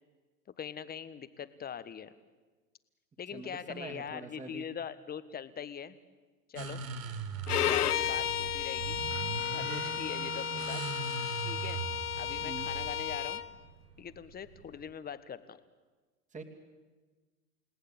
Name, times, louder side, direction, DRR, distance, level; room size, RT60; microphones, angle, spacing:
voice 1, 0.6-2.1 3.2-6.0 6.5-6.8 7.5-9.0 9.5-10.8 11.4-11.8 12.2-13.4 14.0-15.6, left 8 dB, 20° left, 13 dB, 1.4 m, -42 dB
voice 2, 3.3-4.6 7.8-7.9 12.4-12.7 16.3-16.4, right 3 dB, 15° right, 5 dB, 2.7 m, -44 dB
sound 1, 6.6-14.9, right 6 dB, 65° right, 2.4 m, -40 dB
Bowed string instrument, 7.5-13.5, left 10 dB, 80° left, 1.2 m, -33 dB
29.5 x 18.0 x 8.7 m, 1.3 s
hypercardioid pair, 100°, 45 cm